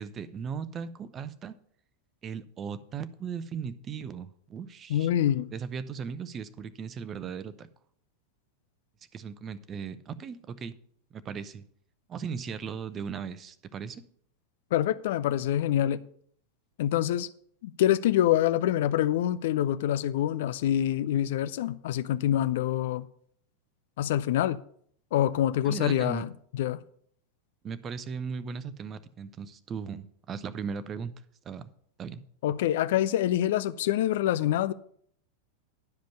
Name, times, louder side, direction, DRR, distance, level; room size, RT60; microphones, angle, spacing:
voice 1, 0.0-1.6 2.2-5.1 5.5-7.7 9.1-10.7 11.1-11.6 12.1-14.0 25.6-26.2 27.6-31.1 31.4-31.7 32.0-32.2, right 6 dB, 25° right, 0.7 m, -37 dB
voice 2, 4.9-5.5 14.7-16.0 16.8-17.3 17.6-23.1 24.0-24.6 25.1-26.8 32.4-34.7, left 12 dB, 55° left, 0.4 m, -26 dB
11.5 x 5.2 x 6.7 m
figure-of-eight pair, 90°, 0 cm